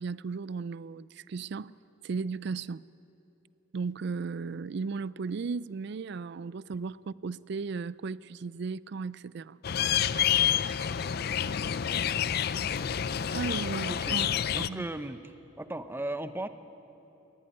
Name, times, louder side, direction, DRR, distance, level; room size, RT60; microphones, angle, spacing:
voice 1, 0.0-1.7 2.0-2.8 3.7-9.6 13.3-14.3 14.6-14.9, right 4 dB, 60° right, 0.4 m, -35 dB
sound 1, 9.6-14.7, left 9 dB, 55° left, 0.4 m, -28 dB
voice 2, 13.9-14.2 14.5-16.5, right 1 dB, 10° right, 0.7 m, -36 dB
20.0 x 16.0 x 10.0 m
head